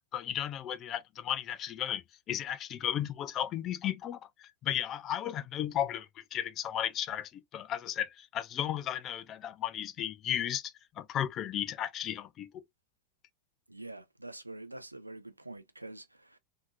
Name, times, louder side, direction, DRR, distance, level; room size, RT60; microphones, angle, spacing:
voice 1, 0.1-12.6, left 11 dB, 30° left, 0.5 m, -35 dB
voice 2, 13.7-16.4, right 2 dB, 85° right, 0.5 m, -46 dB
3.7 x 2.8 x 2.4 m
figure-of-eight pair, 90°, 0 cm